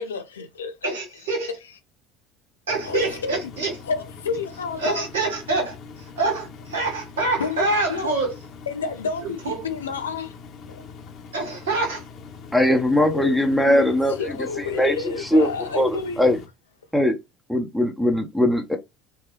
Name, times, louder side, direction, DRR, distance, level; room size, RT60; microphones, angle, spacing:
voice 1, 0.0-0.9 2.8-3.4 3.8-5.0 7.4-8.1 8.7-10.3 10.7-10.8 13.0-16.2, left 5 dB, 80° left, 0.5 m, -30 dB
voice 2, 0.8-1.5 2.7-3.7 4.8-5.8 6.2-8.3 9.2-9.6 11.3-12.0, right 3 dB, 75° right, 1.6 m, -25 dB
Engine, 2.7-16.5, left 5 dB, 50° left, 0.9 m, -42 dB
voice 3, 12.5-14.2 14.7-16.4 16.9-17.2 17.5-18.8, left 1 dB, ahead, 0.8 m, -20 dB
4.4 x 2.3 x 3.3 m
figure-of-eight pair, 65°, 0 cm